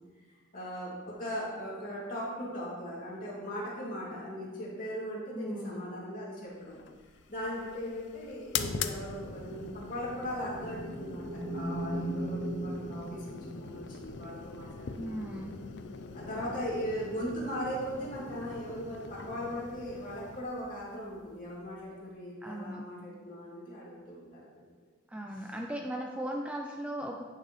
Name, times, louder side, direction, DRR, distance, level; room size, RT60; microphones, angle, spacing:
voice 1, 0.5-6.8 7.3-15.3 16.1-24.7, equal, 40° left, -7 dB, 2.6 m, -39 dB
voice 2, 5.3-5.8 15.0-15.6 16.3-16.6 22.4-22.8 25.1-27.3, equal, 5° right, 1 dB, 0.4 m, -38 dB
sound 1, 6.7-22.0, left 5 dB, 60° left, 0.5 m, -43 dB
sound 2, 10.5-14.0, right 1 dB, 15° left, 1.9 m, -37 dB
11.0 x 6.5 x 3.2 m, 1.5 s
head